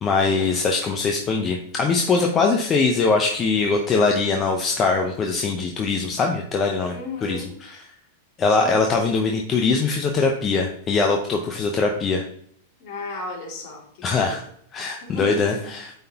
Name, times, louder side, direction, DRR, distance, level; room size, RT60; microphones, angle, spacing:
voice 1, 0.0-6.9 7.2-7.8 8.4-12.2 14.0-14.4 14.7-15.9, left 4 dB, 30° left, 2 dB, 0.8 m, -22 dB
voice 2, 6.9-7.6 8.5-8.8 12.8-14.3 15.0-15.7, left 2 dB, 55° left, -1 dB, 2.4 m, -35 dB
8.8 x 3.9 x 2.9 m, 0.66 s
hypercardioid pair, 105°, 0 cm